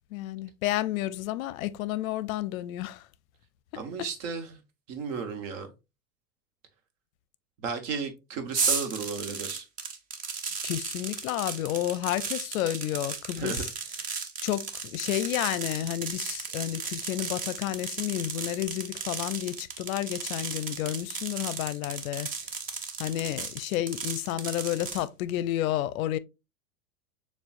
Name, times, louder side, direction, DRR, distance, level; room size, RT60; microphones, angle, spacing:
voice 1, 0.1-3.1 4.0-4.1 10.6-13.7 14.4-22.3 23.0-26.2, left 13 dB, 60° left, 0.5 m, -31 dB
voice 2, 3.8-4.5 4.9-5.7 7.6-9.7 13.4-13.6, right 5 dB, 55° right, 1.1 m, -34 dB
sound 1, 8.5-25.0, right 5 dB, 20° right, 0.4 m, -35 dB
6.7 x 2.3 x 2.4 m
hypercardioid pair, 105°, 47 cm